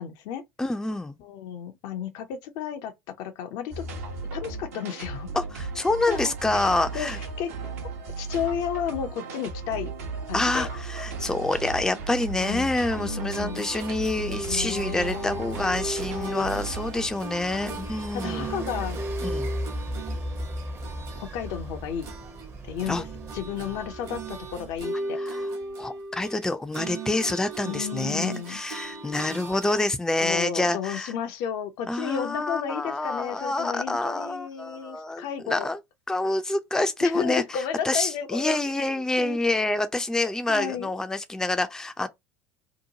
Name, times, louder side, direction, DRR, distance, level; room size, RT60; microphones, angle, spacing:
voice 1, 0.0-0.4 1.2-3.8 4.3-5.3 6.1-7.7 8.2-9.9 10.3-10.7 12.4-12.7 13.0-13.7 14.1-15.6 16.1-16.6 17.5-19.0 21.1-22.1 22.7-23.1 23.3-25.2 27.6-28.6 30.2-35.7 37.0-38.6 38.9-39.4 40.5-40.9, left 9 dB, 55° left, 0.5 m, -33 dB
voice 2, 0.6-1.2 5.4-7.2 10.3-18.5 19.2-19.5 22.9-23.0 25.2-25.5 25.8-31.1 31.9-35.8 36.1-42.1, left 2 dB, 5° left, 0.4 m, -27 dB
sound 1, 3.7-17.1, right 4 dB, 70° right, 0.9 m, -36 dB
sound 2, 12.9-22.5 22.8-29.9, right 2 dB, 50° right, 1.0 m, -37 dB
sound 3, 13.7-24.9, equal, 30° right, 0.7 m, -37 dB
2.9 x 2.1 x 2.7 m
figure-of-eight pair, 70°, 8 cm